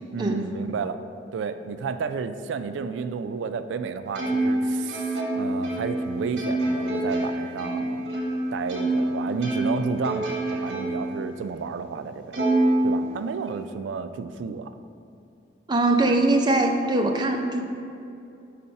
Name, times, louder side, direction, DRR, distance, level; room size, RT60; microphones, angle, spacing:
voice 1, 0.1-1.0 1.3-8.1 8.5-12.4 12.8-14.7 16.1-16.2, right 5 dB, 90° right, 10 dB, 0.3 m, -31 dB
Plucked string instrument, 4.1-9.1 9.4-11.1 11.6-11.7 12.3-13.5, right 1 dB, 70° right, 1.3 m, -26 dB
voice 2, 15.7-17.6, right 2 dB, 25° right, 3 dB, 0.4 m, -21 dB
5.4 x 4.2 x 5.3 m, 2.6 s
head